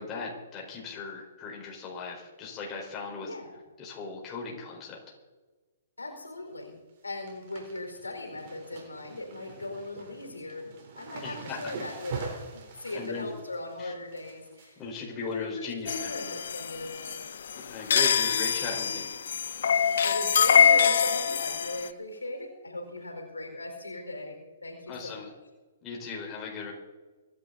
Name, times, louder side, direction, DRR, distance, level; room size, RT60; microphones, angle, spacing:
voice 1, 0.0-3.3 3.8-5.0 11.2-11.7 12.9-13.3 13.8-13.9 14.8-16.1 17.7-19.1 24.9-25.3 25.8-26.7, left 4 dB, 25° left, -2 dB, 4.6 m, -37 dB
voice 2, 3.2-3.5 6.0-6.8 7.0-10.7 11.0-17.2 20.0-25.3, left 2 dB, 85° left, 3 dB, 4.5 m, -39 dB
sound 1, 6.3-6.6 6.9-16.1 16.5-16.9 17.2-18.0 18.4-18.5 19.4-19.7 20.0-20.1 20.4-20.5 22.1-22.2 23.0-23.1, right 5 dB, 45° right, 3.9 m, -45 dB
sound 2, 15.9-21.9, left 7 dB, 60° left, 1.0 m, -24 dB
25.0 x 10.5 x 4.1 m, 1.3 s
figure-of-eight pair, 125°, 0 cm